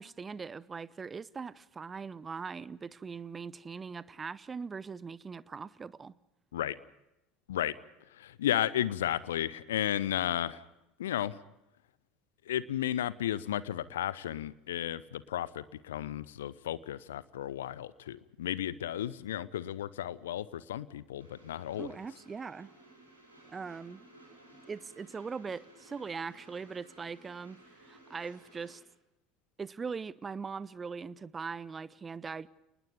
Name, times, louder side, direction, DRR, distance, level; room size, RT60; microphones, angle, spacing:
voice 1, 0.0-6.1 21.8-22.7 23.5-24.0 24.7-28.8 29.6-32.5, right 5 dB, 25° right, 0.7 m, -41 dB
voice 2, 8.2-10.6 11.0-11.4 12.5-22.0, left 11 dB, 70° left, 0.7 m, -33 dB
Train, 21.2-28.8, right 1 dB, 85° right, 6.1 m, -57 dB
29.5 x 20.0 x 5.3 m
figure-of-eight pair, 70°, 0 cm